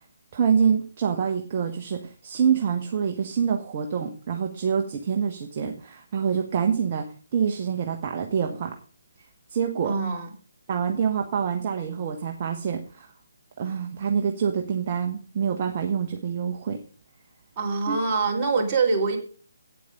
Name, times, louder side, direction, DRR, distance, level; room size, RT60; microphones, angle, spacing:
voice 1, 0.3-7.0 7.3-8.7 9.5-9.9 10.7-13.1 13.6-16.8 17.9-18.0, right 7 dB, 35° right, 3 dB, 1.2 m, -26 dB
voice 2, 9.8-10.3 17.6-19.2, right 4 dB, 20° right, -3 dB, 3.1 m, -24 dB
9.2 x 8.4 x 5.3 m, 0.39 s
figure-of-eight pair, 140°, 0 cm